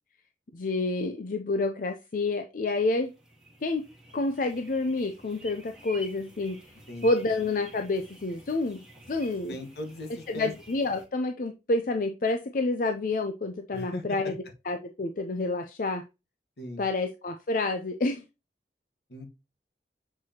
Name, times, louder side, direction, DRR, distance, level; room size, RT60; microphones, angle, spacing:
voice 1, 0.5-3.1 3.6-3.8 4.1-6.6 7.0-8.8 9.1-9.6 10.3-14.4 14.6-16.0 16.8-18.2, left 2 dB, 50° left, 6 dB, 0.5 m, -28 dB
sound 1, 2.7-11.1, right 1 dB, 5° right, 1.5 m, -50 dB
voice 2, 9.5-10.1 10.3-10.5 13.7-14.2 16.6-16.9 19.1-19.3, left 1 dB, 70° left, 5 dB, 1.3 m, -37 dB
7.5 x 4.7 x 2.8 m, 0.27 s
head